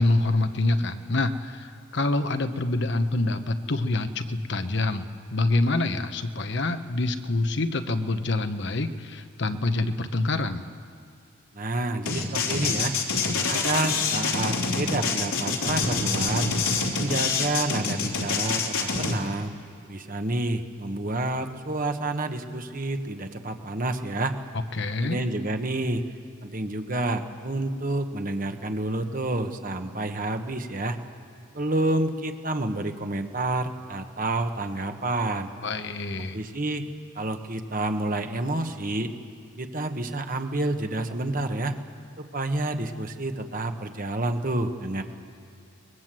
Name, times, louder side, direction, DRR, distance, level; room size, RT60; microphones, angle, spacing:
voice 1, 0.0-10.6 24.7-25.2 35.6-36.4, left 2 dB, 55° left, 8 dB, 1.0 m, -26 dB
voice 2, 11.5-12.9 13.5-16.5 16.9-19.5 19.9-24.3 25.0-26.0 26.4-31.0 31.5-35.5 36.3-36.8 37.1-39.1 39.6-41.7 42.2-45.0, right 2 dB, 40° right, 6 dB, 1.3 m, -29 dB
sound 1, 12.1-19.1, left 4 dB, 80° left, 3.3 m, -26 dB
24.5 x 21.5 x 7.7 m, 2.6 s
head